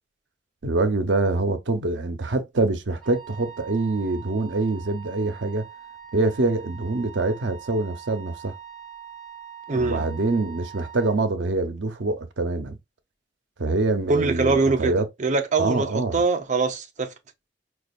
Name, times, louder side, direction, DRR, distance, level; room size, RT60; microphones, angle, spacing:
voice 1, 0.6-5.7 6.1-8.5 9.7-12.8 13.6-15.1 15.6-16.2, right 2 dB, 90° right, 0.7 m, -25 dB
Wind instrument woodwind instrument, 3.0-11.2, right 9 dB, 5° left, 1.2 m, -43 dB
voice 2, 9.7-10.1 14.1-17.1, right 3 dB, 40° right, 0.6 m, -23 dB
5.1 x 2.4 x 2.3 m
head